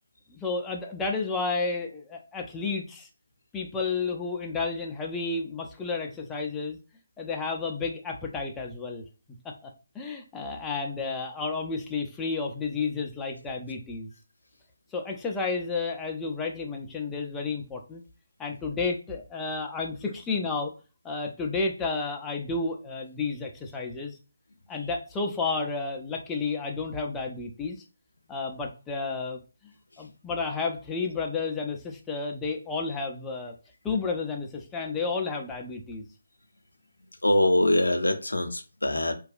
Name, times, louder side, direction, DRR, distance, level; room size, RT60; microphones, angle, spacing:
voice 1, 0.3-3.1 3.5-6.8 7.2-14.1 14.9-18.0 18.4-20.7 21.0-24.2 24.7-27.8 28.3-33.5 33.8-36.1, left 4 dB, 10° left, 1 dB, 0.4 m, -31 dB
voice 2, 37.2-39.1, left 1 dB, 90° left, 6 dB, 0.5 m, -23 dB
2.6 x 2.2 x 2.4 m, 0.33 s
figure-of-eight pair, 155°, 0 cm